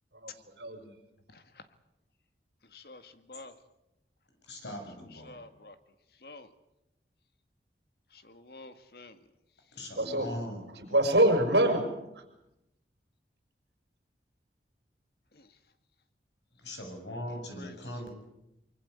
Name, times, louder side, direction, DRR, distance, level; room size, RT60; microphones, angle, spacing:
voice 1, 0.1-1.0 10.0-11.9 12.1-12.3, right 1 dB, 75° right, 5 dB, 5.8 m, -26 dB
voice 2, 1.3-1.7 2.6-3.6 5.1-5.8 6.1-6.5 8.1-9.3 15.3-15.6 17.3-17.8, left 2 dB, 60° left, 10 dB, 2.0 m, -50 dB
voice 3, 4.4-5.5 9.7-10.6 16.6-18.1, equal, 80° left, 4 dB, 7.7 m, -40 dB
24.5 x 24.0 x 8.3 m, 0.89 s
head